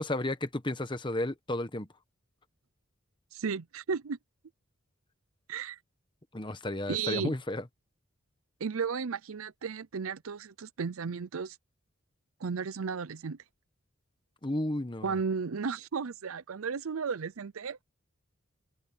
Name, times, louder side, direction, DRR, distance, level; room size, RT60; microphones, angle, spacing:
voice 1, 0.0-1.9 6.3-7.6 14.4-15.2, left 1 dB, 20° left, 1.1 m, -32 dB
voice 2, 3.3-4.2 5.5-5.8 6.9-7.3 8.6-11.6 12.4-13.4 15.0-17.8, right 5 dB, 85° right, 0.6 m, -34 dB
head